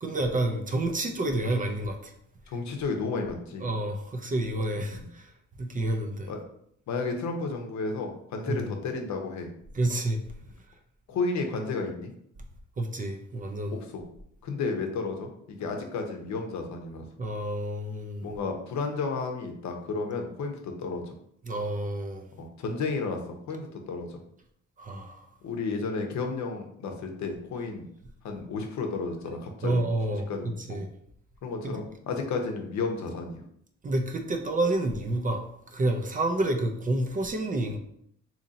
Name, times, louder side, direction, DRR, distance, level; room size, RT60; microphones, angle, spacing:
voice 1, 0.0-2.1 3.6-5.3 5.6-6.3 8.5-8.7 9.7-10.2 12.8-13.8 17.2-18.2 21.4-22.3 24.8-25.2 29.3-30.9 31.6-31.8 33.8-37.8, right 1 dB, 30° right, 4 dB, 0.4 m, -29 dB
voice 2, 2.5-3.7 4.9-5.0 6.3-6.4 6.9-9.5 11.1-12.1 13.7-14.0 14.4-17.0 18.2-21.1 22.4-23.2 23.5-24.2 25.4-27.9 28.2-29.8 30.3-30.8 31.4-33.4, left 4 dB, 70° left, 4 dB, 0.7 m, -32 dB
2.9 x 2.7 x 3.9 m, 0.70 s
cardioid pair, 115°, 29 cm